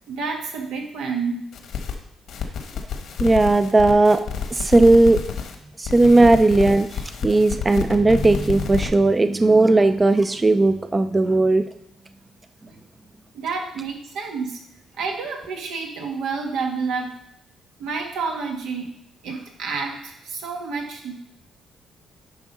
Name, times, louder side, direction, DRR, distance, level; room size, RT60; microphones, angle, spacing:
voice 1, 0.1-1.4 6.2-6.3 12.7-12.8 13.3-14.6 15.0-17.1 17.8-18.9 19.2-21.1, right 4 dB, 90° right, 1 dB, 1.7 m, -29 dB
sound 1, 1.5-1.9 2.3-5.5 5.8-8.9, left 7 dB, 80° left, 1.2 m, -30 dB
voice 2, 3.2-4.2 4.5-5.2 5.8-11.6, right 2 dB, 20° right, 10 dB, 0.5 m, -16 dB
10.5 x 3.6 x 5.4 m, 0.79 s
cardioid pair, 90°, 0 cm